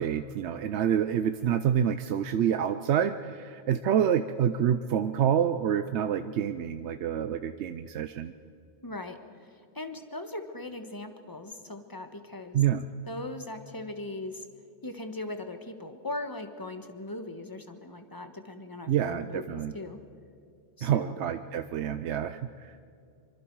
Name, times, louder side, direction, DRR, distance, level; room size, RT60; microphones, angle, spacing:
voice 1, 0.0-8.3 12.5-12.9 18.9-19.7 20.8-22.8, right 9 dB, 80° right, 10 dB, 0.9 m, -27 dB
voice 2, 8.8-12.6 13.1-14.5 14.8-20.0 20.8-21.2, left 2 dB, 20° left, 7 dB, 1.4 m, -39 dB
25.0 x 24.5 x 4.7 m, 2.5 s
omnidirectional pair, 1.1 m